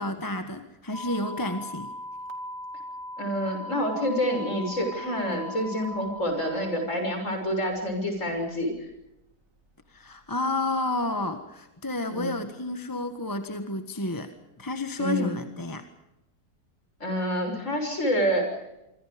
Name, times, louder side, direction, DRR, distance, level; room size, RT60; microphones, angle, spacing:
voice 1, 0.0-1.9 9.9-15.8, left 2 dB, 15° left, 7 dB, 1.5 m, -31 dB
sound 1, 0.9-7.3, equal, 55° right, 2.9 m, -39 dB
voice 2, 3.2-8.7 12.1-12.4 15.0-15.3 17.0-18.6, equal, 50° left, 4 dB, 6.8 m, -27 dB
26.5 x 25.5 x 5.2 m, 0.89 s
omnidirectional pair, 1.7 m